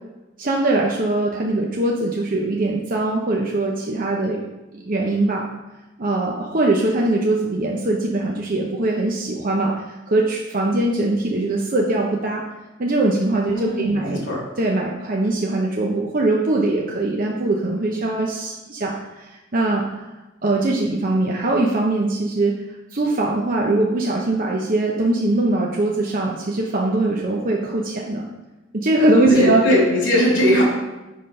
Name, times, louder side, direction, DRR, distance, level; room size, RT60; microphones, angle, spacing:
voice 1, 0.4-4.4 4.7-5.5 6.0-12.4 12.8-14.3 14.6-20.1 20.4-28.2 28.7-29.6, right 2 dB, 45° right, -1 dB, 0.8 m, -21 dB
voice 2, 13.5-14.4 29.3-30.6, equal, 70° left, -3 dB, 3.1 m, -19 dB
6.7 x 5.8 x 5.4 m, 1.0 s
head